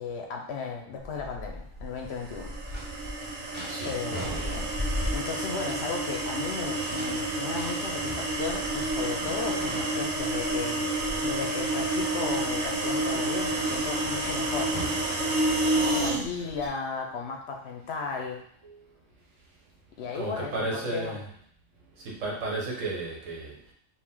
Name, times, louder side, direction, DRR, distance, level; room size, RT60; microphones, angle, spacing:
voice 1, 0.0-2.6 3.8-4.7 5.1-10.9 11.2-14.8 15.8-18.4 20.0-21.2, left 5 dB, 60° left, 2 dB, 0.8 m, -35 dB
Gull seagull, 1.0-16.7, left 1 dB, 50° right, 1.3 m, -41 dB
sound 1, 2.2-15.9, equal, 10° right, 0.6 m, -44 dB
sound 2, 2.3-16.2, right 2 dB, 90° right, 1.3 m, -29 dB
voice 2, 3.6-4.6 18.6-18.7 19.4-19.6 19.9-21.3 21.8-23.7, right 2 dB, 75° right, -3 dB, 1.5 m, -34 dB
4.9 x 2.6 x 3.6 m, 0.62 s
omnidirectional pair, 1.4 m